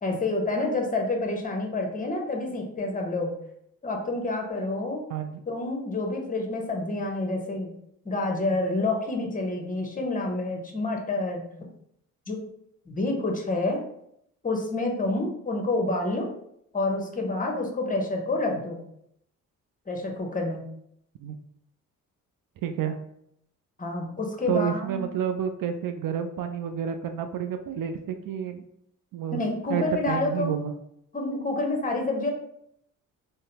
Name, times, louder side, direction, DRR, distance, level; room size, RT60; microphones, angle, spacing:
voice 1, 0.0-3.3 3.8-5.0 5.5-7.7 8.0-11.4 12.3-12.4 12.9-13.8 14.4-16.3 16.7-18.8 19.9-20.6 23.8-25.0 29.3-30.6 31.1-32.3, left 2 dB, 20° left, 2 dB, 0.9 m, -28 dB
voice 2, 5.1-5.4 21.2-21.3 22.6-23.0 24.5-28.6 29.1-29.4 29.7-30.7, right 8 dB, 55° right, 7 dB, 0.5 m, -29 dB
3.8 x 2.1 x 2.8 m, 0.74 s
hypercardioid pair, 50°, 40 cm